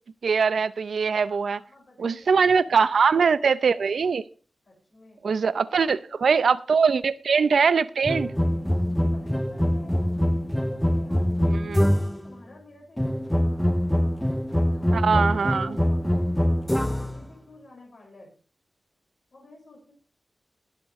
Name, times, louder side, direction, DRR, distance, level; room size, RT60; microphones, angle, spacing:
voice 1, 0.2-1.6 2.0-4.2 5.2-8.3 11.5-11.8 14.9-15.7, right 5 dB, 70° right, 0.6 m, -22 dB
voice 2, 1.2-3.4 4.6-5.2 5.5-6.5 6.9-7.5 8.6-11.4 11.9-14.0 14.4-18.3 19.3-19.9, left 2 dB, 50° left, 5.5 m, -52 dB
sound 1, 8.1-12.3 13.0-17.2, equal, 5° left, 0.5 m, -24 dB
20.5 x 8.3 x 3.1 m
wide cardioid pair, 170°, 0 cm